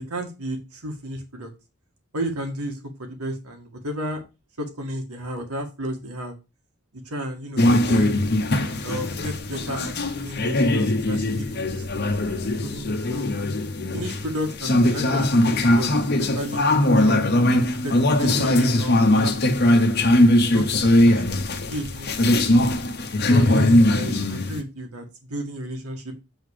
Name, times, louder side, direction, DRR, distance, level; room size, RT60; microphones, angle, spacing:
voice 1, 0.1-1.5 2.1-4.2 4.6-6.4 6.9-8.2 8.8-13.3 13.9-17.2 17.8-21.2 21.5-22.7 23.3-26.2, equal, 85° right, 4 dB, 1.9 m, -33 dB
sound 1, 7.6-24.6, left 1 dB, 45° left, 0.9 m, -20 dB
8.0 x 3.9 x 4.9 m, 0.27 s
head